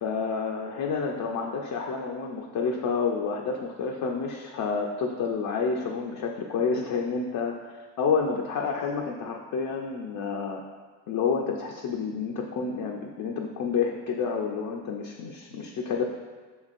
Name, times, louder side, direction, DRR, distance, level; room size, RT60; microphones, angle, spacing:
voice 1, 0.0-7.6 8.0-10.6 11.1-16.1, left 5 dB, 50° left, 0 dB, 0.5 m, -29 dB
6.3 x 2.9 x 2.5 m, 1.4 s
supercardioid pair, 75°, 45 cm